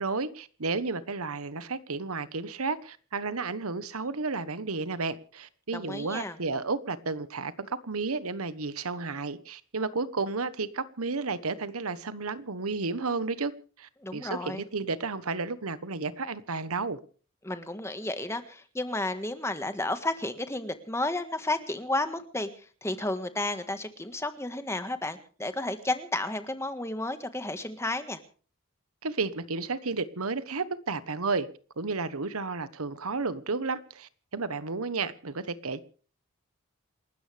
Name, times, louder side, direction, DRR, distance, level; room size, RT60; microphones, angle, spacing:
voice 1, 0.0-13.5 13.8-17.0 29.0-31.5 31.8-35.8, right 4 dB, 80° right, 1.2 m, -32 dB
voice 2, 5.7-6.4 14.0-14.6 17.4-22.5 22.8-28.2, left 2 dB, 10° left, 1.6 m, -32 dB
28.5 x 13.5 x 3.4 m
head